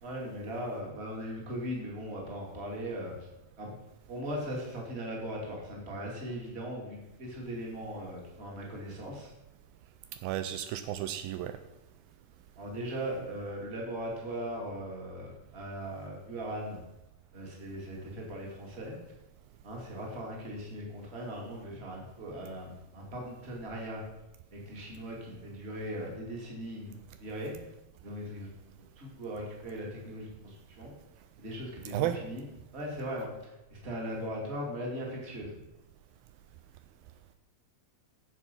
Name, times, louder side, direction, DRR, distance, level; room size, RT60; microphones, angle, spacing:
voice 1, 0.0-3.1 3.6-3.8 4.1-9.3 12.6-16.8 17.3-19.0 19.6-24.0 24.5-26.9 27.2-27.5 28.0-28.5 29.0-30.9 31.4-32.4 32.7-35.5, equal, 20° right, -2 dB, 2.2 m, -39 dB
voice 2, 10.2-11.6 31.9-32.2, right 12 dB, 80° right, 10 dB, 2.3 m, -33 dB
11.0 x 7.4 x 5.4 m, 0.99 s
omnidirectional pair, 4.3 m